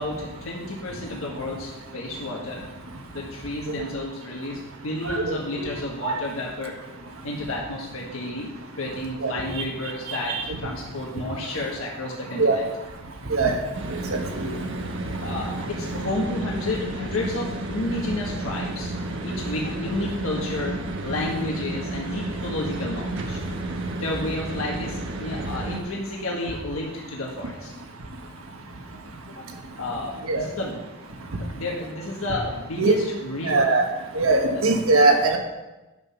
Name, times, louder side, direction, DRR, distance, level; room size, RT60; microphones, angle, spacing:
voice 1, 0.0-2.7 3.1-6.8 7.2-8.5 8.8-12.7 15.2-18.9 19.2-23.4 24.0-27.7 29.4-29.5 29.8-30.9 31.4-33.7 34.5-34.8, left 2 dB, 80° left, -2 dB, 1.5 m, -31 dB
voice 2, 5.0-5.4 6.0-6.1 9.2-9.3 10.3-10.4 12.4-12.6 13.3-13.5 14.1-14.5 30.3-30.4 32.8-32.9 33.5-33.8 34.1-35.4, right 3 dB, 90° right, 3 dB, 1.4 m, -20 dB
sound 1, 13.7-25.8, right 2 dB, 60° right, 1.2 m, -31 dB
10.5 x 6.2 x 5.6 m, 1.1 s
head